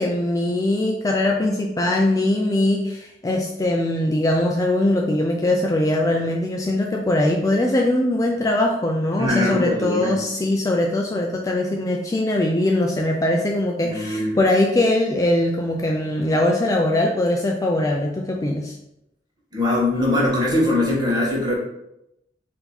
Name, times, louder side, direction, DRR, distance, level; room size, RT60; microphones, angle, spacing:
voice 1, 0.0-18.7, left 1 dB, 20° left, 1 dB, 0.3 m, -21 dB
voice 2, 9.2-10.2 13.8-14.3 19.5-21.5, left 1 dB, 25° right, -4 dB, 1.2 m, -21 dB
4.4 x 2.7 x 4.0 m, 0.85 s
head